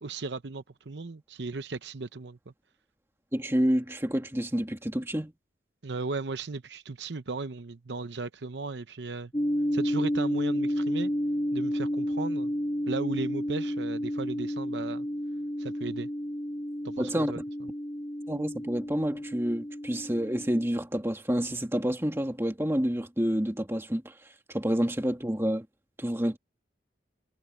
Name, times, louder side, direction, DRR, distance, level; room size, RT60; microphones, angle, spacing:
voice 1, 0.0-2.4 5.8-9.3 9.7-11.1 11.5-12.5 12.9-15.1 15.6-16.1 16.8-17.7, right 3 dB, 75° right, 0.8 m, -36 dB
voice 2, 3.3-5.3 17.0-17.4 18.3-24.1 24.5-25.7 26.0-26.4, equal, 15° right, 1.9 m, -28 dB
sound 1, 9.3-20.7, equal, 20° left, 2.5 m, -31 dB
head